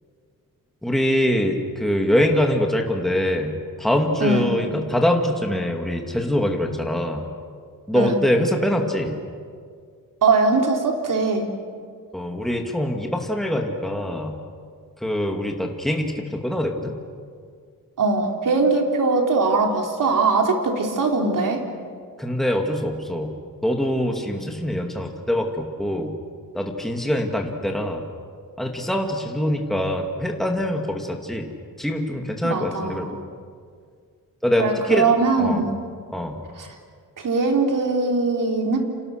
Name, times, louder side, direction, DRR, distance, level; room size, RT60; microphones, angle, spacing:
voice 1, 0.8-7.3 7.9-9.1 12.1-14.4 15.0-16.9 22.2-23.3 23.6-26.1 26.5-28.0 28.6-31.5 31.8-33.2 34.4-35.1 35.4-35.6 36.1-36.4, left 1 dB, ahead, 2 dB, 2.4 m, -23 dB
voice 2, 4.2-4.5 7.9-8.1 10.2-11.5 18.0-21.6 32.4-33.1 34.6-35.8 36.6-36.7 37.2-38.8, right 3 dB, 65° right, 2 dB, 3.9 m, -21 dB
29.5 x 27.5 x 6.6 m, 2.1 s
wide cardioid pair, 140°, 34 cm